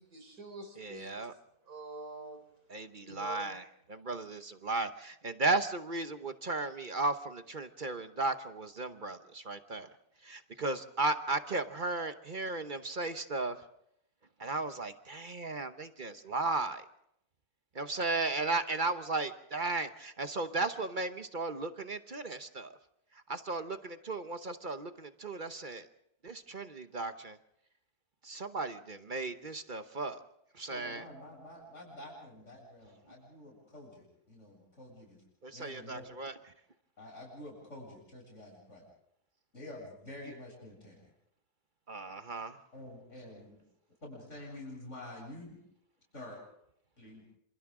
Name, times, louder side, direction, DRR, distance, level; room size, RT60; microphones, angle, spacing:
voice 1, 0.0-1.2 1.7-2.4 3.1-3.5, right 2 dB, 75° right, 5 dB, 4.3 m, -45 dB
voice 2, 0.8-1.3 2.7-9.9 10.2-13.6 14.4-16.8 17.7-22.7 23.3-25.9 26.2-27.4 28.2-30.2 30.5-31.0 35.4-36.3 41.9-42.6, right 3 dB, 35° right, 9 dB, 1.0 m, -35 dB
voice 3, 30.7-35.2 35.5-36.1 37.0-38.8 39.5-41.0 42.7-43.6 44.0-45.6 46.1-46.4 47.0-47.2, left 1 dB, 50° left, -1 dB, 8.0 m, -48 dB
27.5 x 27.5 x 3.8 m, 0.74 s
omnidirectional pair, 1.6 m